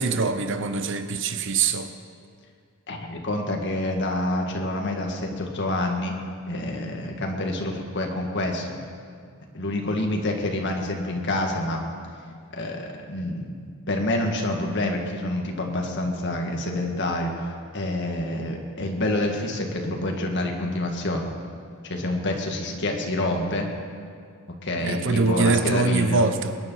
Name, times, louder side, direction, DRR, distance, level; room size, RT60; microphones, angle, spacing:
voice 1, 0.0-1.9 24.8-26.6, right 4 dB, 60° right, 9 dB, 0.8 m, -23 dB
voice 2, 2.9-6.1 6.5-8.7 9.5-11.8 12.5-13.6 13.9-21.3 21.8-23.7 24.6-26.3, left 1 dB, 55° left, 2 dB, 1.9 m, -27 dB
21.5 x 9.9 x 5.7 m, 2.2 s
head